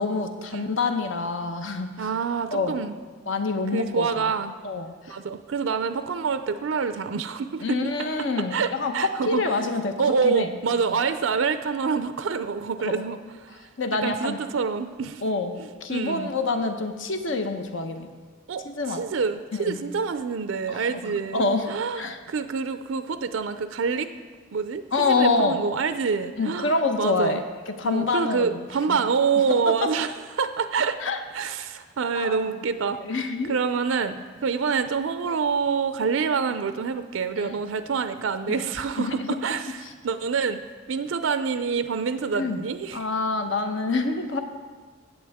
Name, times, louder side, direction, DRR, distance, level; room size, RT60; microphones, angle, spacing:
voice 1, 0.0-1.9 2.5-2.8 3.3-4.2 4.6-4.9 7.6-8.9 9.3-10.0 10.2-10.6 12.8-13.0 13.8-14.4 15.2-15.5 15.8-18.1 18.6-19.0 19.5-19.8 20.7-21.7 22.0-22.2 24.9-25.6 26.4-28.6 28.9-29.0 29.7-29.9 31.0-31.2 32.2-32.5 32.8-33.6 37.4-37.6 38.5-38.7 39.0-39.3 42.3-42.6 42.9-44.4, left 3 dB, 70° left, 6 dB, 0.9 m, -26 dB
voice 2, 2.0-2.9 3.7-4.5 5.1-7.9 8.4-9.4 10.0-13.2 13.5-13.6 14.0-15.2 15.6-16.3 18.5-18.6 18.9-24.1 24.5-27.4 27.8-31.0 31.3-40.6 40.9-43.1, right 5 dB, 80° right, 10 dB, 0.4 m, -27 dB
16.0 x 7.5 x 3.6 m, 1.5 s
head